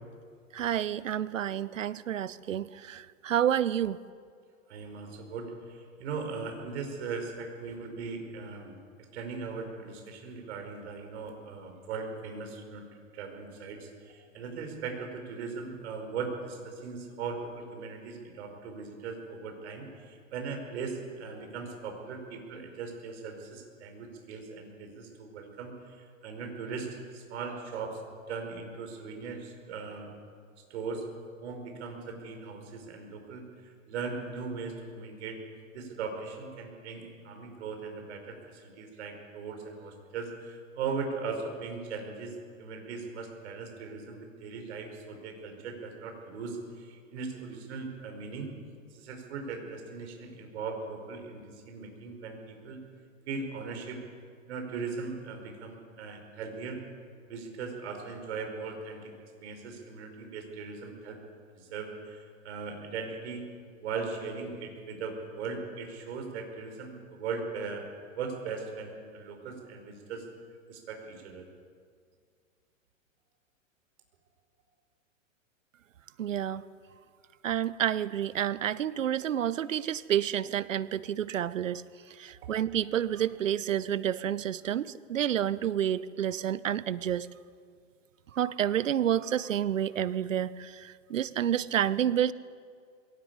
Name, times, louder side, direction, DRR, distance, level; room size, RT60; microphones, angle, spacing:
voice 1, 0.5-4.0 76.2-76.6 77.4-81.8 82.2-87.3 88.3-92.3, right 10 dB, 70° right, 19 dB, 0.8 m, -29 dB
voice 2, 4.7-12.9 13.1-28.0 28.3-30.1 30.7-31.1 31.4-35.4 35.7-48.5 48.9-52.8 53.3-54.0 54.5-56.8 57.3-59.1 59.4-61.2 61.5-63.5 63.8-67.9 68.1-70.3 70.7-71.5 82.3-82.4, right 4 dB, 55° right, 4 dB, 5.2 m, -39 dB
21.5 x 18.0 x 8.4 m, 2.1 s
hypercardioid pair, 110°, 40 cm